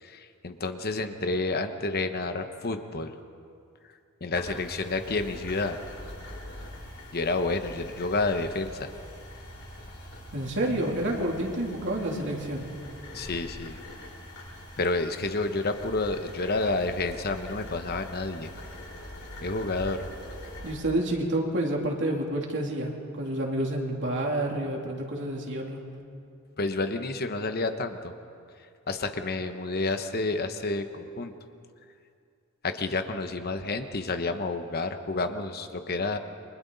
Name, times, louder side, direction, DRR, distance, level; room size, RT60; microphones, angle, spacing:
voice 1, 0.0-3.1 4.2-5.8 7.1-8.9 13.1-13.8 14.8-18.5 19.4-20.1 26.6-28.1 28.9-31.3 32.6-36.2, left 3 dB, 45° left, 8 dB, 1.0 m, -30 dB
sound 1, 4.3-20.8, left 1 dB, 65° left, 6.3 m, -43 dB
voice 2, 10.3-12.7 20.6-25.8, right 1 dB, 55° right, -1 dB, 3.0 m, -29 dB
29.5 x 24.0 x 4.1 m, 2.4 s
head